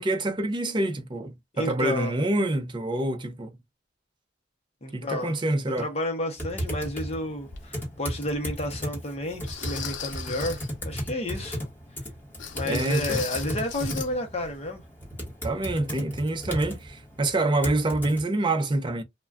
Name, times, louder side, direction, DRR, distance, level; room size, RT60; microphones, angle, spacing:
voice 1, 0.0-3.5 4.9-5.9 12.7-13.2 15.4-19.0, right 2 dB, 25° right, 0.5 m, -26 dB
voice 2, 1.5-2.1 4.8-5.4 5.8-11.7 12.5-14.8, left 1 dB, 35° left, 0.6 m, -31 dB
Typing, 6.4-18.2, equal, 10° left, 1.2 m, -35 dB
sound 1, 7.5-7.6 8.3-8.4 9.5-10.7 12.4-14.1 14.4-14.6 15.0-15.1, left 7 dB, 85° left, 0.6 m, -37 dB
2.3 x 2.1 x 3.4 m
head